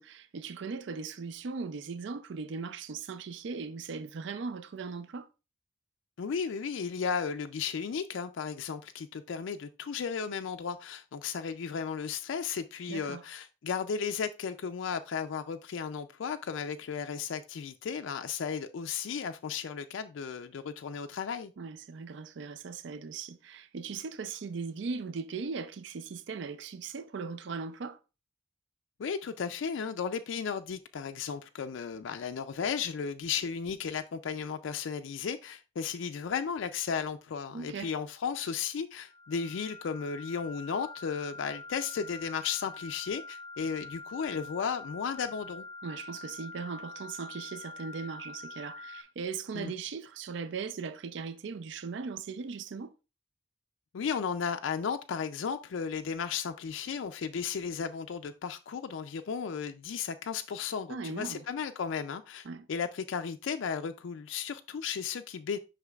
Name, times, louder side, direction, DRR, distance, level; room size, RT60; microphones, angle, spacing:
voice 1, 0.0-5.3 12.9-13.3 21.6-28.0 37.5-37.9 45.8-52.9 60.9-61.5 62.4-62.7, right 5 dB, 60° right, 0.4 m, -39 dB
voice 2, 6.2-21.5 29.0-45.6 49.5-49.7 53.9-65.6, left 6 dB, 65° left, 0.4 m, -34 dB
sound 1, 39.1-49.0, left 3 dB, 10° left, 0.9 m, -45 dB
8.1 x 5.7 x 2.3 m
head